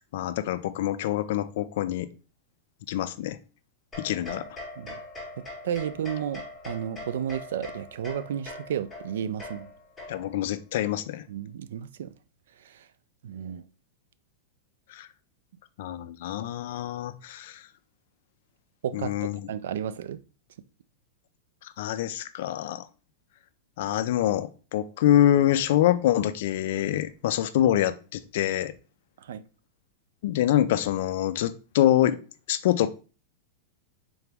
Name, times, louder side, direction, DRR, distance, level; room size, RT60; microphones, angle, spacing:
voice 1, 0.1-2.1 2.9-3.4 4.0-4.5 10.1-11.2 14.9-15.1 15.8-17.6 18.9-19.5 21.6-22.9 23.8-28.7 30.2-32.2 32.5-32.9, left 12 dB, 60° left, 0.3 m, -25 dB
sound 1, 3.9-10.5, left 2 dB, 5° left, 1.2 m, -42 dB
voice 2, 5.6-9.7 11.3-12.1 13.2-13.6 18.8-19.1 19.5-20.2 29.2-29.4, right 9 dB, 85° right, 0.3 m, -32 dB
3.8 x 2.9 x 3.3 m
supercardioid pair, 165°, 0 cm